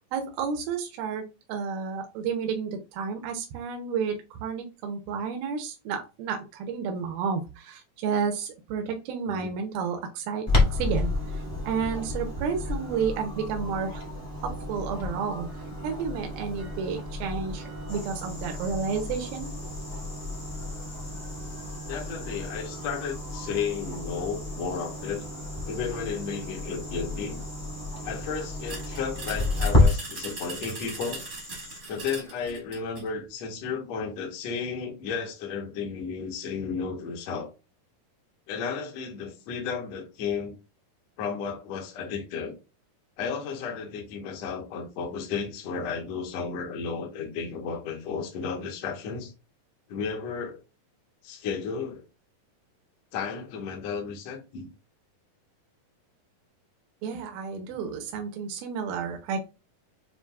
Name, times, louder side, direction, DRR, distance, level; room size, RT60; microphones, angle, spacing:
voice 1, 0.1-14.0 14.4-15.5 15.8-19.5 57.0-59.5, right 6 dB, 90° right, 2.5 m, -31 dB
Clock, 10.5-29.8, left 2 dB, 45° left, 0.5 m, -31 dB
sound 1, 17.9-31.8, left 2 dB, 90° left, 0.6 m, -46 dB
voice 2, 21.9-25.2 25.7-27.4 28.0-31.2 31.9-37.5 38.5-40.6 41.2-42.5 43.2-49.3 49.9-50.6 51.2-52.0 53.1-54.7 57.7-57.8, left 6 dB, 70° left, 1.6 m, -33 dB
sound 2, 28.7-33.1, right 3 dB, 65° right, 0.7 m, -40 dB
6.9 x 2.5 x 2.2 m
omnidirectional pair, 4.1 m